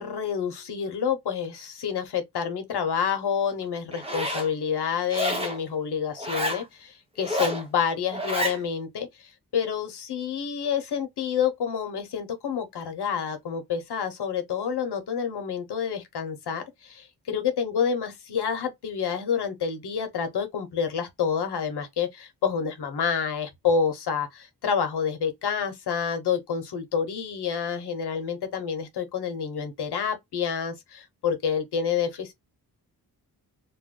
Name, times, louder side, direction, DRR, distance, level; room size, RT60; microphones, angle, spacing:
voice 1, 0.0-9.3 9.5-32.3, left 7 dB, 75° left, 0.9 m, -28 dB
Zipper (clothing), 3.9-4.5 5.1-5.6 6.2-6.6 7.2-7.6 8.1-8.6, equal, 15° right, 0.7 m, -29 dB
2.4 x 2.1 x 3.6 m
wide cardioid pair, 120°, 39 cm